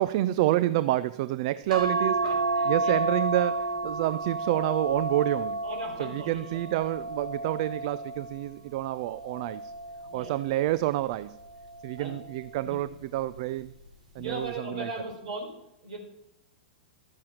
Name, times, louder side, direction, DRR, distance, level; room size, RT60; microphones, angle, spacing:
voice 1, 0.0-2.4 2.7-5.6 6.0-9.7 10.1-11.4 11.8-13.7 14.2-14.9, right 15 dB, 50° right, 16 dB, 0.4 m, -28 dB
sound 1, 1.7-8.3 9.0-10.4 11.6-12.0 12.4-12.5, right 2 dB, 80° right, 5.0 m, -31 dB
voice 2, 2.2-3.0 5.6-6.6 10.0-10.4 12.0-12.2 12.6-12.8 14.1-15.5 15.8-16.0, right 2 dB, 65° right, 2 dB, 4.1 m, -38 dB
12.5 x 8.6 x 6.3 m, 0.88 s
figure-of-eight pair, 100°, 4 cm